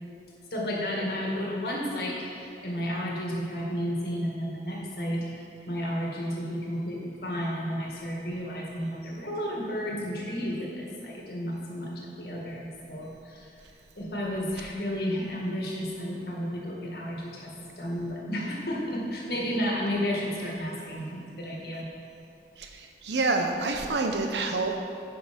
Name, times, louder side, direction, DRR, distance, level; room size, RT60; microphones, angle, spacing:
voice 1, 0.5-5.2 5.7-13.5 14.0-21.8, equal, 55° left, -3 dB, 1.7 m, -32 dB
voice 2, 22.6-24.8, right 3 dB, 75° right, 4 dB, 0.8 m, -28 dB
10.0 x 5.7 x 5.2 m, 2.6 s
head